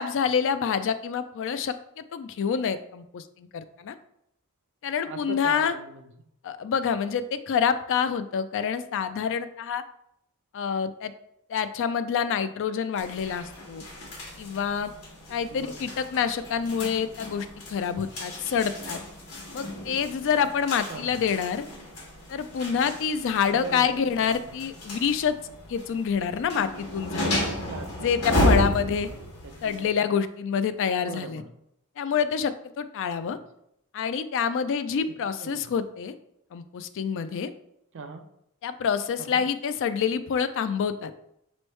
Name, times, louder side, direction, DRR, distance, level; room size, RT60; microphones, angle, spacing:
voice 1, 0.0-3.9 4.8-5.7 6.4-9.8 10.5-11.1 11.5-13.8 14.4-14.9 15.3-19.0 19.5-21.6 22.3-25.3 25.7-27.4 28.0-29.1 29.6-31.4 32.0-33.4 33.9-36.1 36.5-37.5 38.6-41.1, left 7 dB, 60° left, 12 dB, 0.3 m, -27 dB
voice 2, 5.1-6.3 15.5-15.8 20.9-21.2 23.5-24.6 27.4-29.2 29.4-29.9 31.0-31.5 33.3-33.4 35.1-35.2 35.4-35.7 37.9-38.3 39.2-39.4, right 4 dB, 55° right, 7 dB, 0.5 m, -41 dB
sound 1, 13.0-29.9, left 1 dB, 80° left, 1.4 m, -33 dB
5.1 x 3.1 x 3.1 m, 0.76 s
head